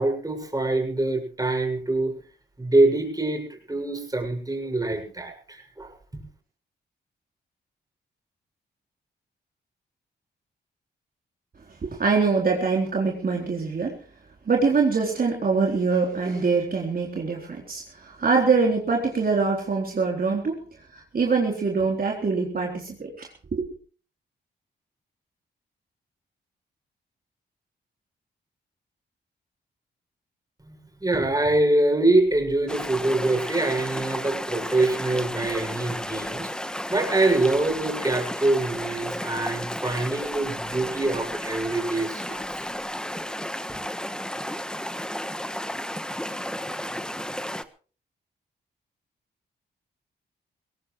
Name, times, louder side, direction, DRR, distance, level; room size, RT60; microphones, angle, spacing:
voice 1, 0.0-2.1 2.6-5.9 30.7-36.5 36.9-42.7, right 2 dB, 20° right, 2 dB, 6.7 m, -24 dB
voice 2, 11.8-14.0 14.5-20.6 20.9-23.7, right 4 dB, 50° right, -1 dB, 3.9 m, -24 dB
sound 1, 32.7-47.6, equal, 5° left, 1.3 m, -33 dB
22.0 x 17.5 x 3.3 m, 0.39 s
cardioid pair, 60°, 19 cm